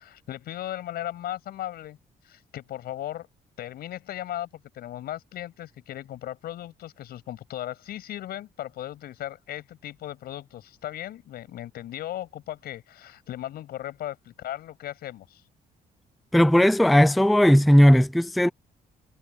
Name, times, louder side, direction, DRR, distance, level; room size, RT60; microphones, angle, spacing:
voice 1, 0.0-2.0 2.2-3.3 3.6-4.5 4.7-15.4, left 13 dB, 90° left, 7.4 m, -37 dB
voice 2, 16.3-18.5, equal, ahead, 0.4 m, -17 dB
cardioid pair, 145°, 16 cm